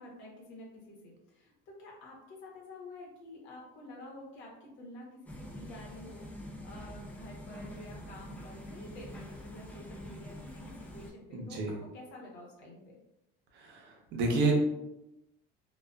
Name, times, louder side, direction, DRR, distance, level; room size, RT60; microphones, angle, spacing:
voice 1, 0.0-1.5 1.8-11.6 11.9-13.0, left 1 dB, 85° left, -2 dB, 0.9 m, -49 dB
sound 1, 5.3-11.1, left 1 dB, 5° left, 0.3 m, -45 dB
voice 2, 11.3-11.8 13.5-14.5, right 3 dB, 65° right, 1 dB, 0.7 m, -30 dB
2.3 x 2.3 x 2.3 m, 0.89 s
cardioid pair, 120°, 19 cm